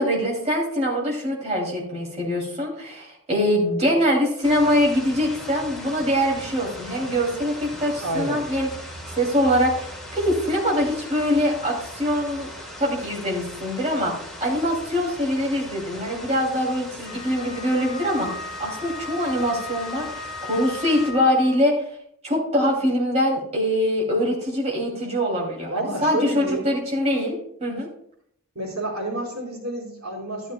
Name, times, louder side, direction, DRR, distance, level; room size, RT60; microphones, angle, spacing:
voice 1, 0.0-8.7 9.2-12.5 12.8-14.1 14.4-21.7 22.2-27.4 27.6-27.9, equal, 30° right, -3 dB, 2.6 m, -23 dB
sound 1, 4.4-21.1, equal, ahead, 2.0 m, -39 dB
voice 2, 8.0-8.4 25.7-26.6 28.5-30.5, right 1 dB, 80° right, -7 dB, 4.1 m, -29 dB
Wind instrument woodwind instrument, 17.0-21.7, left 4 dB, 50° left, 1.1 m, -37 dB
12.0 x 11.5 x 2.2 m, 0.70 s
head